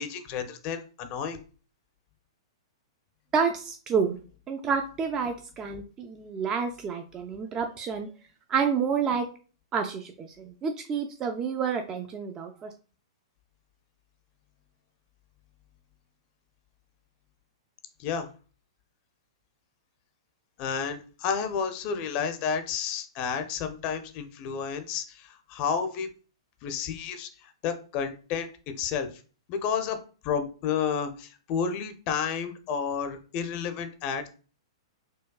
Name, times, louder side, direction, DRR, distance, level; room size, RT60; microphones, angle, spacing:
voice 1, 0.0-1.4 18.0-18.3 20.6-26.1 26.6-28.5 28.7-29.1 29.5-30.0 30.2-34.3, left 6 dB, 40° left, 8 dB, 0.5 m, -31 dB
voice 2, 3.3-4.2 4.5-8.1 8.5-9.3 9.7-12.7, right 6 dB, 25° right, 4 dB, 0.4 m, -29 dB
4.5 x 2.2 x 2.3 m, 0.37 s
figure-of-eight pair, 110°, 3 cm